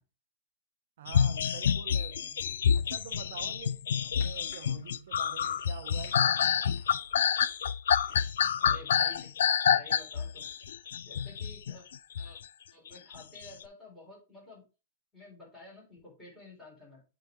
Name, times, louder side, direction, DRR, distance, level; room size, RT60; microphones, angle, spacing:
voice 1, 1.0-6.7, right 10 dB, 55° right, 0.6 m, -47 dB
sound 1, 1.1-12.4 13.1-13.5, left 8 dB, 90° left, 0.3 m, -28 dB
sound 2, 3.1-8.3, left 2 dB, 65° left, 2.2 m, -55 dB
voice 2, 8.6-9.3 9.7-10.5 11.0-11.8 12.2-12.4 12.7-14.6 15.1-17.0, left 1 dB, 10° left, 4.0 m, -51 dB
8.3 x 4.0 x 3.4 m
supercardioid pair, 175°, 0 cm